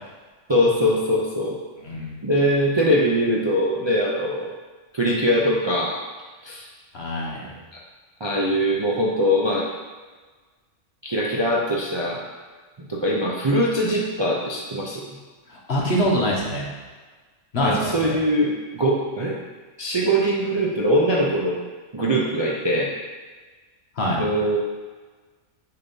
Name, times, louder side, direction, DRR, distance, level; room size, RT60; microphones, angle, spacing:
voice 1, 0.5-1.6 2.2-4.5 4.9-6.0 6.4-6.7 8.2-9.7 11.0-12.2 12.8-15.1 17.6-19.4 19.8-21.6 21.9-22.9 24.2-24.6, equal, 30° right, -4 dB, 0.5 m, -22 dB
voice 2, 1.8-2.2 6.9-7.5 15.5-16.7 17.5-18.2 24.0-24.2, equal, 55° left, -3 dB, 1.4 m, -24 dB
7.0 x 2.9 x 5.3 m, 1.4 s
omnidirectional pair, 1.3 m